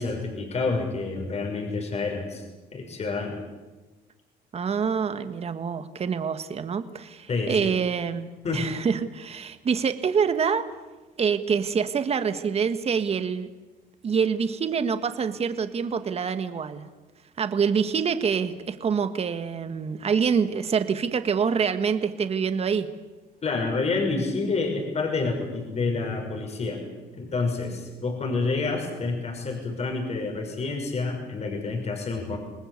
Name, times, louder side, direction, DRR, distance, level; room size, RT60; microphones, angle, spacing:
voice 1, 0.0-2.4 2.7-3.3 7.3-7.7 8.4-8.7 23.4-26.8 27.1-32.4, left 3 dB, 40° left, 3 dB, 6.2 m, -28 dB
voice 2, 4.5-10.6 11.2-13.5 14.0-16.8 17.4-22.9, right 6 dB, 35° right, 10 dB, 1.8 m, -26 dB
28.0 x 19.5 x 8.3 m, 1.2 s
cardioid pair, 110°, 17 cm